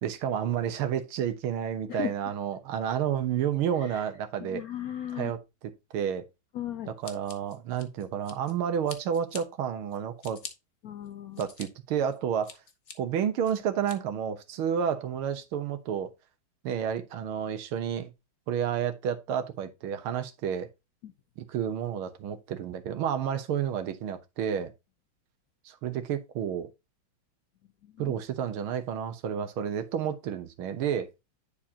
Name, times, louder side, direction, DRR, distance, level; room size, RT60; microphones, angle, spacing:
voice 1, 0.0-4.6 5.1-5.4 5.9-6.2 7.0-10.4 11.4-12.6 13.0-16.1 16.6-18.1 18.5-20.7 21.4-24.7 25.7-26.7 28.0-31.1, right 8 dB, 85° right, 1.9 m, -30 dB
voice 2, 4.4-5.3 6.5-6.9 10.8-11.4 28.0-28.2, left 11 dB, 70° left, 0.9 m, -36 dB
Scissors, 7.0-8.5 8.9-9.4 9.9-10.5 11.1-11.7 12.1-12.9 13.4-14.0, left 6 dB, 45° left, 1.1 m, -44 dB
10.0 x 4.6 x 2.8 m
omnidirectional pair, 2.3 m